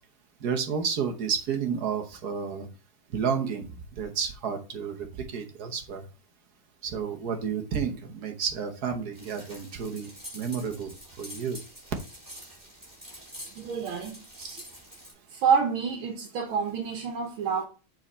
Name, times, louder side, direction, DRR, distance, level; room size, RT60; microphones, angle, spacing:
voice 1, 0.4-2.7 3.1-3.6 4.0-6.0 6.8-10.9 11.2-11.6, right 6 dB, 55° right, 1.4 m, -31 dB
sound 1, 9.1-15.1, equal, 10° right, 3.5 m, -46 dB
voice 2, 13.6-14.6 15.3-17.7, right 6 dB, 75° right, 1.9 m, -28 dB
7.5 x 4.4 x 4.1 m
omnidirectional pair, 2.3 m